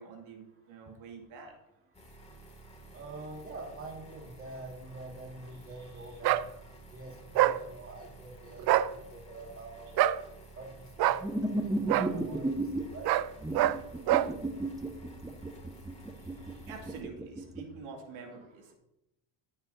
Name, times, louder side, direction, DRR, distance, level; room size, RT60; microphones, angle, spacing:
voice 1, 0.0-1.5 5.5-6.2 16.1-18.7, right 4 dB, 80° right, 1 dB, 2.4 m, -48 dB
sound 1, 1.9-17.0, right 2 dB, 15° left, 2.3 m, -52 dB
voice 2, 2.9-6.6 6.9-10.1 10.6-13.1, right 2 dB, 30° right, 0 dB, 2.0 m, -46 dB
sound 2, 6.2-6.5 7.4-7.6 8.6-8.9 10.0-10.2 11.0-11.2 11.9-12.1 13.0-13.3 13.5-13.8 14.1-14.3, right 13 dB, 55° right, 0.5 m, -25 dB
sound 3, 11.2-12.8 13.4-17.6, right 2 dB, 10° right, 0.9 m, -33 dB
12.0 x 8.7 x 2.7 m, 0.90 s
cardioid pair, 105°, 46 cm